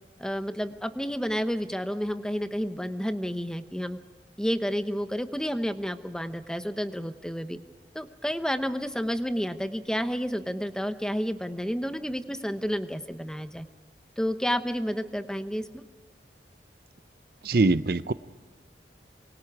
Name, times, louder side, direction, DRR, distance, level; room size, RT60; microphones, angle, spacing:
voice 1, 0.2-4.0 4.4-7.6 7.9-13.7 14.2-15.8, equal, 5° left, 9 dB, 0.9 m, -30 dB
voice 2, 17.4-18.1, right 3 dB, 55° right, 15 dB, 0.6 m, -22 dB
27.0 x 24.0 x 4.8 m, 1.3 s
head